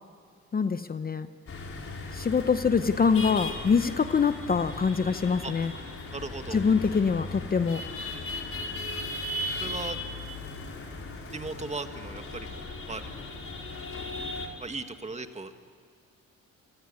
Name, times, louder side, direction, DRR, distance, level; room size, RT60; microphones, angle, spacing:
voice 1, 0.5-1.3 2.1-5.7 6.5-7.8, left 5 dB, 30° left, 11 dB, 0.8 m, -24 dB
Autorickshaw ride Mumbai, 1.5-14.5, left 2 dB, 45° left, 4.6 m, -37 dB
voice 2, 6.1-6.6 9.6-10.0 11.3-13.0 14.6-15.5, right 3 dB, 20° right, 7 dB, 1.9 m, -37 dB
26.5 x 19.5 x 9.7 m, 2.3 s
cardioid pair, 90°, 30 cm